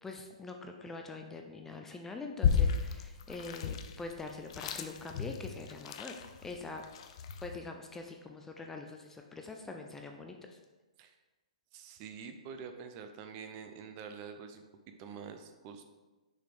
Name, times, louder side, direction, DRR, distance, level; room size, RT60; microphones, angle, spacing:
voice 1, 0.0-6.2 6.4-6.8 7.4-10.6, left 3 dB, 10° left, 3 dB, 0.5 m, -44 dB
sound 1, 2.4-7.6, left 7 dB, 50° left, 0.6 m, -33 dB
voice 2, 11.7-15.8, right 6 dB, 35° right, 7 dB, 0.6 m, -46 dB
6.3 x 4.2 x 5.0 m, 1.2 s
hypercardioid pair, 140°, 4 cm